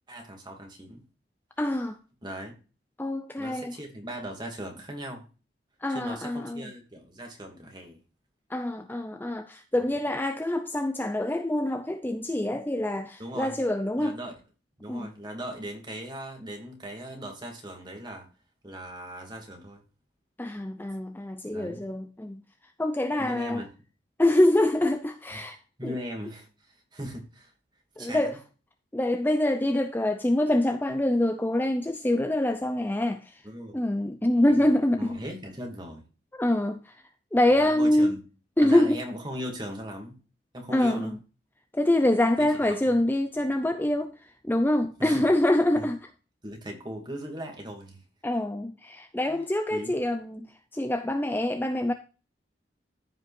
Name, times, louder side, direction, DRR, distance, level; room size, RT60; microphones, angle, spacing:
voice 1, 0.1-1.0 2.2-2.5 3.4-5.2 5.9-8.0 13.2-13.6 14.0-14.4 14.8-18.3 18.6-19.8 21.5-21.8 23.2-23.7 25.8-27.5 28.0-28.4 33.4-33.8 34.5-34.6 35.0-36.0 37.5-38.2 38.6-40.2 40.5-41.2 42.4-42.8 45.0-45.3 45.7-45.9 46.4-48.0 49.3-49.4 49.7-50.0, equal, 25° right, 2.7 m, -38 dB
voice 2, 1.6-2.0 3.0-3.7 5.8-6.7 8.5-14.2 14.9-15.1 20.4-22.4 22.8-23.6 24.2-25.6 25.8-26.0 28.0-28.4 28.9-33.4 33.7-35.2 36.3-36.9 37.3-38.1 38.6-39.0 40.7-41.2 41.7-44.1 44.4-46.0 48.2-50.5 50.7-51.9, left 1 dB, 10° left, 0.5 m, -25 dB
14.5 x 5.5 x 2.6 m
head